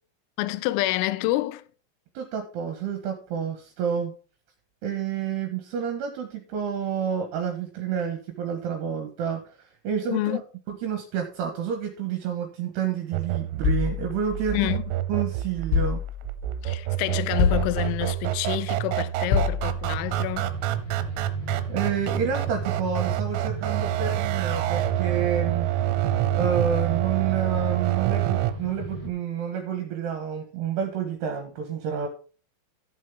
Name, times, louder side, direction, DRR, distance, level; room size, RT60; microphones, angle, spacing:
voice 1, 0.4-1.7 10.1-10.4 14.5-14.8 16.6-20.6, left 17 dB, 85° left, 3.3 m, -28 dB
voice 2, 2.1-4.1 4.8-10.4 10.7-14.6 15.1-16.0 21.7-25.9 26.3-32.1, right 7 dB, 70° right, 2.8 m, -29 dB
sound 1, 13.1-28.5, right 15 dB, 85° right, 3.3 m, -27 dB
sound 2, 13.6-15.0 15.7-16.6 17.4-18.3 19.3-20.1, left 5 dB, 70° left, 3.4 m, -27 dB
sound 3, 19.9-29.1, equal, 20° left, 2.1 m, -37 dB
14.0 x 7.4 x 3.6 m
omnidirectional pair, 5.9 m